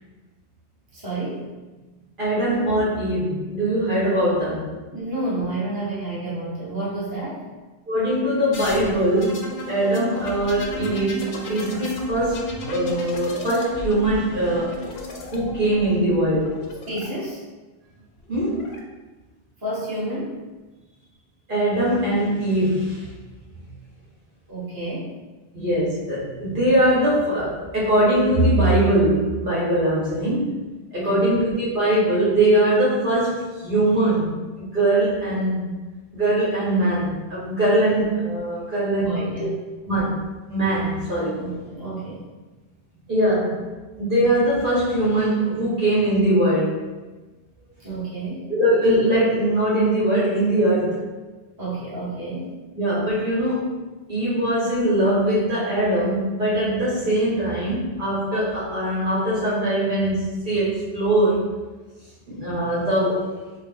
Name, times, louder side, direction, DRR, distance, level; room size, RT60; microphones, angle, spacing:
voice 1, 0.9-1.5 4.9-7.5 16.9-17.4 19.6-20.4 24.5-25.1 31.0-31.4 38.9-39.5 41.3-42.2 47.8-48.5 51.6-52.5, right 2 dB, 20° right, -9 dB, 1.0 m, -30 dB
voice 2, 2.2-4.7 7.9-14.8 15.3-16.6 18.3-18.7 21.5-23.1 25.5-30.6 30.9-35.7 36.1-39.5 39.9-41.3 43.1-43.7 44.0-46.8 48.5-51.0 52.7-53.7 54.1-61.5 62.3-63.3, right 1 dB, 55° right, -8 dB, 1.2 m, -21 dB
sound 1, 8.5-17.1 18.2-18.8, equal, 75° left, 0.8 m, -34 dB
3.8 x 2.0 x 3.6 m, 1.2 s
omnidirectional pair, 1.1 m